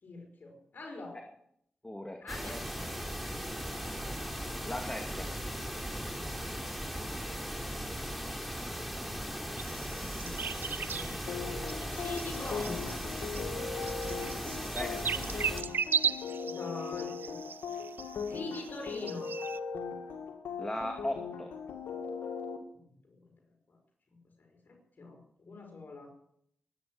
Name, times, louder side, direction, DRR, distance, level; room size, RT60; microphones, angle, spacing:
voice 1, 0.0-1.3 2.2-3.0 7.9-11.5 11.9-12.9 16.5-17.4 18.3-19.3 22.7-23.3 23.7-23.8 24.1-26.1, left 2 dB, 60° left, 2 dB, 5.2 m, -45 dB
voice 2, 1.8-2.3 4.7-5.3 14.7-15.1 20.6-21.5, left 1 dB, 15° left, 4 dB, 2.3 m, -37 dB
sound 1, 2.3-15.6, equal, ahead, 3.9 m, -38 dB
sound 2, 9.6-19.6, right 6 dB, 70° right, 0.7 m, -38 dB
sound 3, 11.3-22.6, left 5 dB, 85° left, 2.1 m, -39 dB
21.5 x 9.6 x 6.2 m, 0.70 s
supercardioid pair, 40°, 4 cm